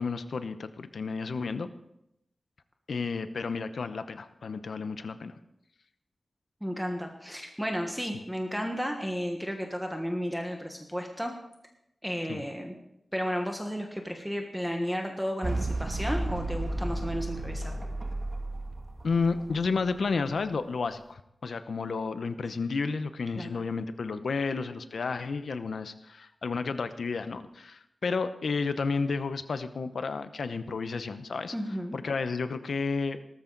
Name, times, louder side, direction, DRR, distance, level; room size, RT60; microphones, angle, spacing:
voice 1, 0.0-1.7 2.9-5.3 12.3-12.4 19.0-31.5 31.9-33.2, left 4 dB, 75° left, 11 dB, 0.9 m, -31 dB
voice 2, 6.6-11.3 12.0-12.8 13.1-17.7 23.3-23.5 31.5-32.0, equal, ahead, 3 dB, 1.4 m, -33 dB
sound 1, 15.4-20.0, right 2 dB, 35° right, 1.7 m, -33 dB
18.5 x 13.5 x 4.0 m, 0.82 s
wide cardioid pair, 120°, 0 cm